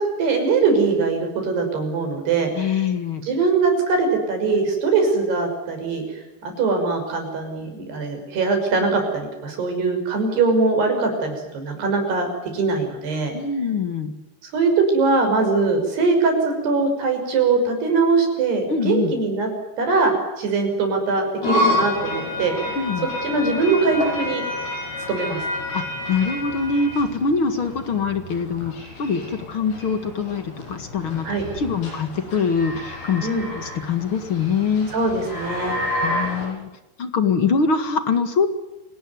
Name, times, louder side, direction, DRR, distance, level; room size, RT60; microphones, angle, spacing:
voice 1, 0.0-2.7 3.3-6.0 6.4-12.3 12.5-13.3 14.4-19.5 19.8-20.1 20.4-22.8 23.2-24.4 25.1-25.4 31.2-31.4 33.2-33.5 34.9-35.8, right 4 dB, 75° right, 5 dB, 8.0 m, -21 dB
voice 2, 2.5-3.2 13.3-14.1 18.7-19.1 22.7-23.1 25.7-31.3 31.5-33.3 33.5-34.9 36.0-36.7 37.0-38.5, left 5 dB, 45° left, 9 dB, 1.8 m, -23 dB
sound 1, 21.4-36.5, left 1 dB, 85° left, 9.1 m, -29 dB
28.5 x 19.0 x 9.5 m, 1.1 s
omnidirectional pair, 4.7 m